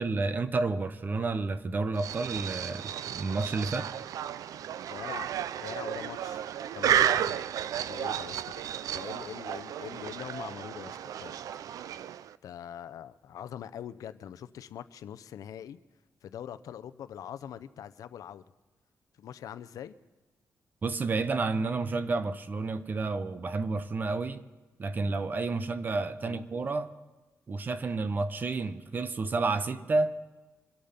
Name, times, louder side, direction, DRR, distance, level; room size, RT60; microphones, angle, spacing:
voice 1, 0.0-3.9 20.8-24.4 24.8-26.9 27.5-30.2, right 3 dB, 30° right, 0.7 m, -30 dB
sound 1, 2.0-12.4, right 10 dB, 80° right, 0.4 m, -33 dB
voice 2, 4.9-5.3 5.6-6.5 6.7-7.5 7.9-11.4 12.4-15.8 16.2-18.4 19.2-19.9 26.2-26.4, left 9 dB, 80° left, 0.6 m, -43 dB
25.5 x 8.6 x 5.7 m
wide cardioid pair, 165°, 6 cm